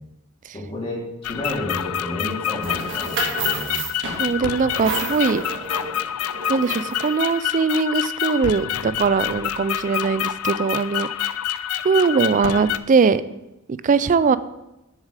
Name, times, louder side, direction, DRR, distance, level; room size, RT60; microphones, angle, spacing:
voice 1, 0.5-3.8, left 1 dB, 25° left, -5 dB, 2.8 m, -31 dB
sound 1, 1.2-12.8, left 11 dB, 90° left, 0.4 m, -27 dB
sound 2, 2.6-7.3, right 3 dB, 60° right, 1.7 m, -30 dB
voice 2, 4.2-5.4 6.5-11.1 11.8-13.2 13.7-14.4, right 5 dB, 35° right, 15 dB, 0.3 m, -20 dB
7.4 x 6.4 x 5.0 m, 0.95 s
head